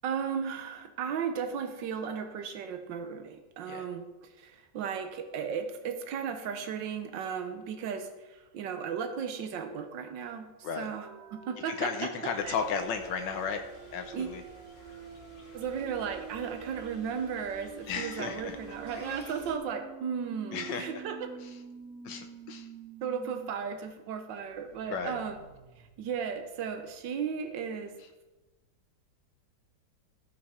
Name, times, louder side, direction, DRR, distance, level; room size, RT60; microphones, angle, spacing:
voice 1, 0.0-4.0 4.4-12.5 14.1-14.3 15.5-21.3 23.0-25.4 25.8-27.9, right 7 dB, 85° right, 7 dB, 1.6 m, -35 dB
sound 1, 11.0-23.5 23.8-23.9 24.3-27.0, right 7 dB, 55° right, 1.0 m, -48 dB
voice 2, 11.6-13.6 13.9-14.4 17.9-18.6 19.1-19.2 20.5-21.0 21.4-21.6 22.0-22.7 24.9-25.2, left 6 dB, 85° left, 5 dB, 1.5 m, -34 dB
sound 2, 12.3-19.5, left 2 dB, 35° left, 1.6 m, -53 dB
15.5 x 5.9 x 5.0 m, 1.1 s
omnidirectional pair, 1.9 m